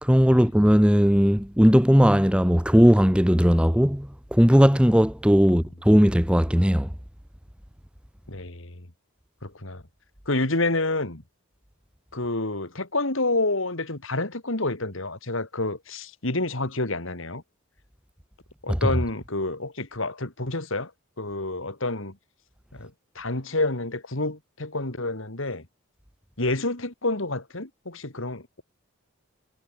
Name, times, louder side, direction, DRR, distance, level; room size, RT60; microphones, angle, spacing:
voice 1, 0.0-6.9 18.7-18.8, equal, 5° right, 1.3 m, -18 dB
voice 2, 8.3-8.9 9.4-9.8 10.3-11.2 12.1-17.4 18.6-20.9 21.2-22.2 22.7-25.7 26.4-28.6, left 2 dB, 60° left, 2.8 m, -28 dB
head